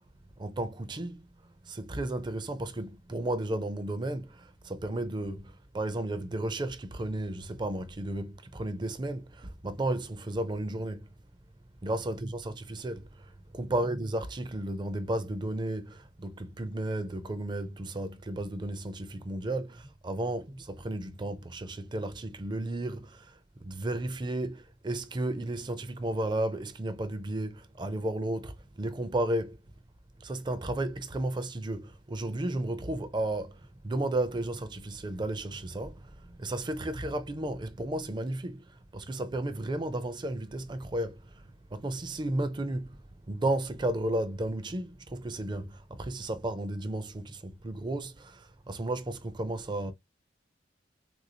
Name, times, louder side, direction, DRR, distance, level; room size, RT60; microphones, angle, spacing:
voice 1, 0.4-11.1 11.8-29.6 30.2-49.9, right 1 dB, 25° right, 0.5 m, -33 dB
3.6 x 2.6 x 2.7 m
head